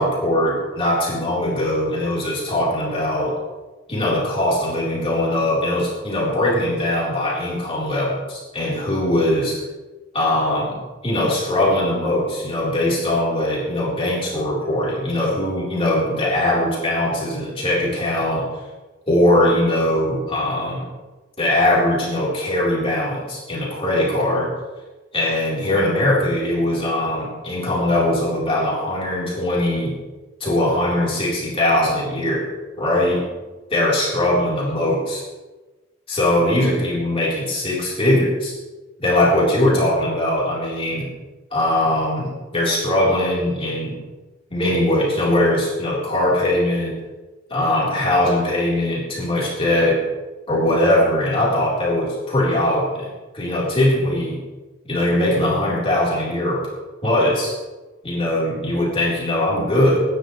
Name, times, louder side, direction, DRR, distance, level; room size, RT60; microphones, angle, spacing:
voice 1, 0.0-3.4 3.9-9.6 10.1-10.8 11.0-18.5 19.1-20.8 21.4-24.5 25.1-29.9 30.4-32.5 32.8-33.2 33.7-35.2 36.1-38.5 39.0-41.1 41.5-44.0 44.5-47.0 47.5-50.0 50.5-53.1 53.3-54.4 54.9-56.6 57.0-57.5 58.0-60.0, left 1 dB, 25° left, -5 dB, 3.7 m, -20 dB
23.0 x 10.5 x 3.2 m, 1.2 s
head